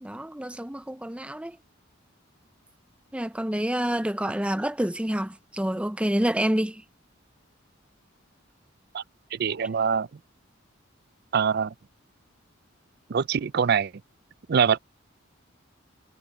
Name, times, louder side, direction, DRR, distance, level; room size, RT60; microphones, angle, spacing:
voice 1, 0.0-1.6 3.1-6.8, right 1 dB, 5° right, 0.6 m, -28 dB
voice 2, 9.3-10.1 11.3-11.7 13.1-13.9 14.5-14.8, right 6 dB, 50° right, 0.4 m, -23 dB
head